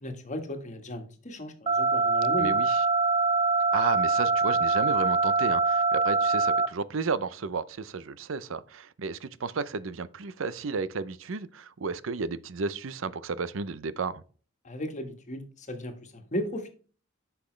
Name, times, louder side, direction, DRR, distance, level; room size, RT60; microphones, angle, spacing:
voice 1, 0.0-2.5 14.6-16.7, equal, 40° left, 1.6 m, -35 dB
sound 1, 1.7-6.7, right 3 dB, 25° right, 0.6 m, -24 dB
voice 2, 2.4-2.8 3.7-14.2, right 4 dB, 75° right, 0.6 m, -33 dB
10.0 x 5.9 x 3.2 m
head